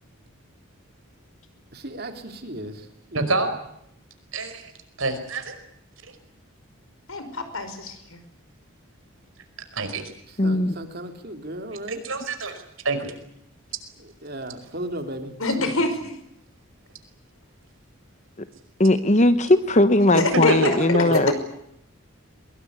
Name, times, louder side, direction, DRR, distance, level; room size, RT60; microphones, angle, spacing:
voice 1, 1.7-3.3 10.3-12.0 14.0-15.8 21.1-21.2, right 1 dB, 45° right, 6 dB, 3.5 m, -36 dB
voice 2, 3.1-3.5 4.3-4.7 5.0-5.6 6.1-6.2 9.7-10.0 11.9-13.1 20.5-20.7 21.3-21.4, right 3 dB, 65° right, 8 dB, 5.2 m, -26 dB
voice 3, 7.1-8.2 15.4-15.9 20.1-20.8, left 2 dB, 70° left, 9 dB, 5.5 m, -25 dB
voice 4, 10.4-10.7 18.4-18.5 18.8-21.3, left 1 dB, 30° left, 12 dB, 1.0 m, -19 dB
23.0 x 22.0 x 9.7 m, 0.77 s
head